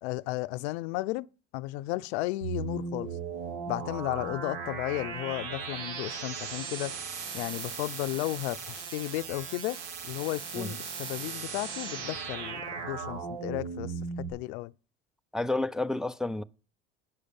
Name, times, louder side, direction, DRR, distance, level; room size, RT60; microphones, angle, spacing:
voice 1, 0.0-1.3 1.5-3.1 3.7-7.0 7.3-14.7, left 19 dB, 70° left, 0.5 m, -34 dB
sound 1, 2.4-14.3, right 5 dB, 80° right, 2.4 m, -37 dB
voice 2, 15.3-16.4, left 2 dB, ahead, 0.4 m, -30 dB
9.6 x 6.4 x 7.0 m
hypercardioid pair, 75°, 34 cm